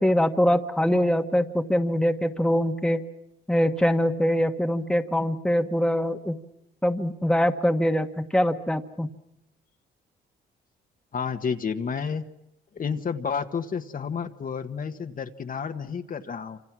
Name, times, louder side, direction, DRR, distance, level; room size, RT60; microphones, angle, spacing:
voice 1, 0.0-3.0 3.5-6.4 6.8-9.1, equal, 5° left, 5 dB, 1.4 m, -23 dB
voice 2, 11.1-12.2 12.7-16.6, left 6 dB, 45° left, 7 dB, 1.4 m, -30 dB
27.5 x 26.0 x 6.1 m, 0.84 s
cardioid pair, 90°, 20 cm